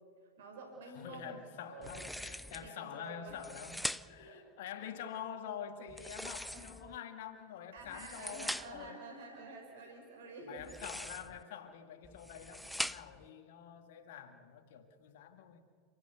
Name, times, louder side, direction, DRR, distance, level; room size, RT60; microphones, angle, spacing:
voice 1, 0.4-1.4 1.7-1.9 2.5-3.5 4.0-4.4 6.5-6.7 7.7-10.7, right 3 dB, 60° right, 5.5 m, -49 dB
voice 2, 0.9-9.0 9.8-9.9 10.5-15.7, left 8 dB, 55° left, 2.0 m, -47 dB
sound 1, 1.8-2.7 3.3-4.3 5.9-7.0 7.8-8.9 10.6-11.4 12.0-13.3, equal, ahead, 0.5 m, -42 dB
30.0 x 14.0 x 8.2 m
figure-of-eight pair, 90°, 0 cm